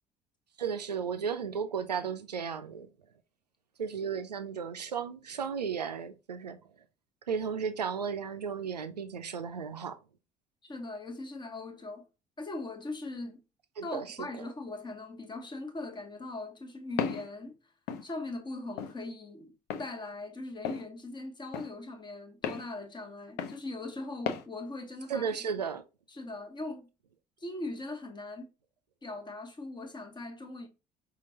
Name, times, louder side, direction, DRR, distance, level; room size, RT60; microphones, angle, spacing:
voice 1, 0.6-2.9 3.8-6.6 7.3-10.0 13.8-14.5 25.1-25.8, right 6 dB, 85° right, 0.4 m, -34 dB
voice 2, 10.6-12.1 12.4-13.4 13.8-17.6 18.0-19.5 19.8-25.3 26.1-26.9 27.4-28.5 29.0-30.7, left 2 dB, 20° left, 1.2 m, -40 dB
Walk footsteps, 17.0-17.3 17.9-18.0 18.8-19.0 19.7-19.9 20.6-20.8 21.5-21.7 22.4-22.6 23.4-23.6 24.3-24.4, left 7 dB, 55° left, 0.7 m, -33 dB
5.7 x 2.4 x 2.8 m
figure-of-eight pair, 55°, 20 cm